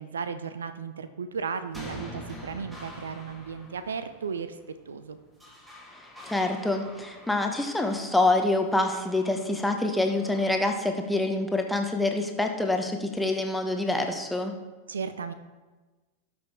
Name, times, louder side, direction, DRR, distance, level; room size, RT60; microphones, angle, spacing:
voice 1, 0.0-4.6 4.9-5.2 14.9-15.3, right 6 dB, 70° right, 11 dB, 0.5 m, -35 dB
sound 1, 1.4-10.7, equal, 10° right, 2.3 m, -46 dB
voice 2, 6.3-14.5, left 2 dB, 5° left, 4 dB, 1.1 m, -26 dB
18.0 x 6.1 x 3.5 m, 1.3 s
figure-of-eight pair, 90°, 0 cm